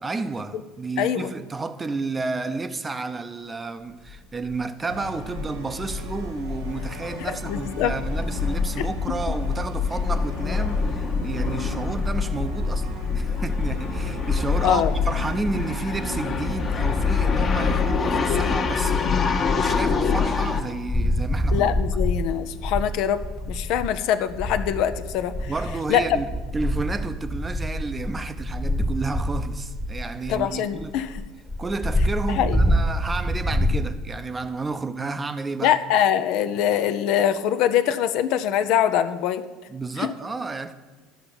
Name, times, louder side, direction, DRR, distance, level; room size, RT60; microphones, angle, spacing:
voice 1, 0.0-19.1 19.5-21.7 25.4-31.0 31.6-35.8 39.7-40.7, right 3 dB, 20° right, 0.6 m, -31 dB
voice 2, 1.0-1.3 7.2-7.9 8.8-8.9 14.6-14.9 21.5-23.2 23.5-25.5 25.9-26.0 30.3-31.1 32.3-32.6 35.6-39.4 40.0-40.1, left 10 dB, 60° left, 0.5 m, -23 dB
sound 1, 4.1-4.2 4.5-4.6 4.9-20.6, left 5 dB, 35° left, 1.1 m, -25 dB
sound 2, 4.9-17.9, right 3 dB, 80° right, 1.1 m, -40 dB
sound 3, 20.9-24.0 24.3-33.8, equal, 15° left, 1.1 m, -26 dB
11.5 x 5.8 x 7.0 m
figure-of-eight pair, 65°, 0 cm